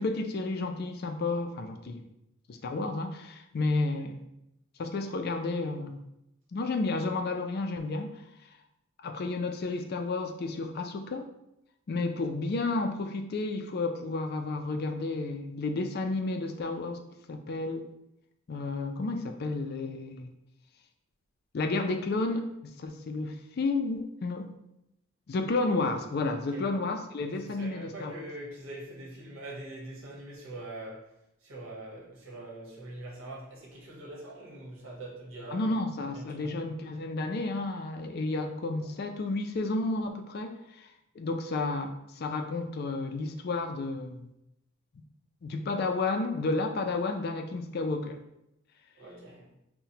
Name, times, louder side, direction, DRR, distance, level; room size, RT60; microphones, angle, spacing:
voice 1, 0.0-2.0 2.5-4.2 4.8-6.0 6.5-8.3 9.0-11.3 11.9-17.0 17.3-17.9 18.5-20.3 21.5-24.5 25.3-28.1 35.5-40.9 41.2-44.3 44.9-45.0 45.4-48.2, left 3 dB, 50° left, 6 dB, 0.4 m, -31 dB
voice 2, 27.3-31.1 31.4-35.7 36.1-36.6 38.7-38.8 49.0-49.5, right 1 dB, 80° right, -3 dB, 1.2 m, -43 dB
5.7 x 2.1 x 2.7 m, 0.84 s
head